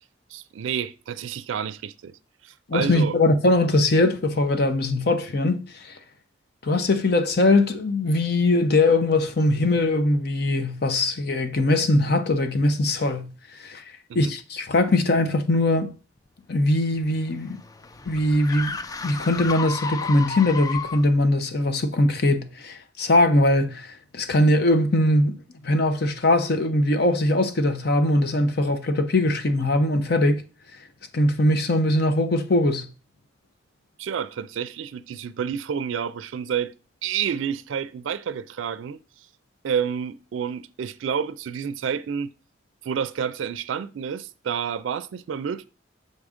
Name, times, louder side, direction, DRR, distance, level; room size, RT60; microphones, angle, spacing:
voice 1, 0.3-2.1 2.4-3.1 14.1-14.3 34.0-36.7 37.0-39.0 39.6-42.3 42.8-45.7, right 7 dB, 85° right, 0.4 m, -29 dB
voice 2, 2.7-6.0 6.6-13.3 13.6-13.8 14.1-15.9 16.5-17.6 18.1-18.8 19.0-25.4 25.6-30.4 31.1-32.9, left 2 dB, 55° left, 0.7 m, -21 dB
sound 1, 16.7-21.2, left 5 dB, 20° left, 0.3 m, -33 dB
6.5 x 4.9 x 3.6 m
head